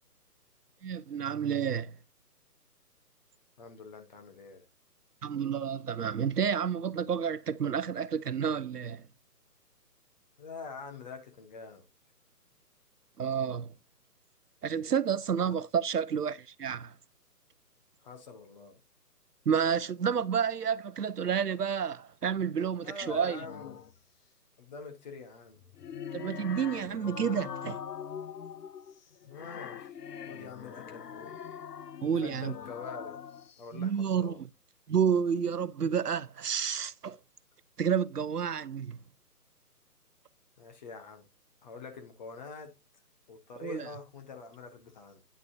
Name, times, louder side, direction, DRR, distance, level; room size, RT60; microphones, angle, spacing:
voice 1, 0.8-1.9 5.2-9.0 13.2-13.7 14.6-16.9 19.5-23.4 26.1-27.8 32.0-32.5 33.7-34.3 34.9-37.2 37.8-39.0 43.6-43.9, right 7 dB, 70° right, 0.7 m, -30 dB
voice 2, 3.6-4.7 10.4-11.8 15.4-15.6 18.0-18.8 22.8-23.9 24.6-25.6 29.2-30.0 30.3-31.4 32.1-33.2 33.6-34.4 40.6-41.3 41.6-42.7 43.3-45.2, left 4 dB, 25° left, 1.1 m, -45 dB
sound 1, 23.0-24.0 25.5-33.6, left 8 dB, 75° left, 0.7 m, -43 dB
9.4 x 6.0 x 2.7 m
figure-of-eight pair, 145°, 48 cm